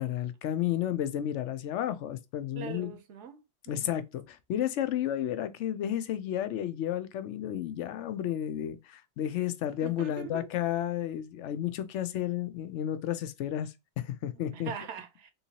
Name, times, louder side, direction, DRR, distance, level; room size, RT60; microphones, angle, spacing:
voice 1, 0.0-2.9 3.7-14.7, left 11 dB, 85° left, 0.9 m, -32 dB
voice 2, 2.6-3.4 3.7-4.0 9.8-10.5 14.5-15.3, right 8 dB, 80° right, 1.0 m, -42 dB
3.7 x 2.8 x 2.7 m
omnidirectional pair, 1.2 m